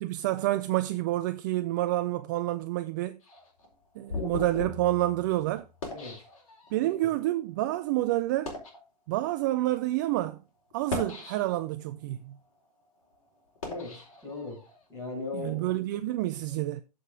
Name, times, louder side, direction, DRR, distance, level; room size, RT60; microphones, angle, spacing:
voice 1, 0.0-3.2 4.0-5.7 6.7-8.6 9.1-10.4 10.7-12.4 15.3-16.8, right 16 dB, 30° right, 0.4 m, -28 dB
sound 1, 3.2-6.9 7.6-7.8 8.3-8.8 9.6-9.8 10.7-11.8 12.3-14.8, left 3 dB, 50° left, 4.1 m, -39 dB
voice 2, 13.6-14.6 14.9-15.7, left 3 dB, 10° left, 6.0 m, -38 dB
14.5 x 5.2 x 3.6 m
figure-of-eight pair, 110°, 21 cm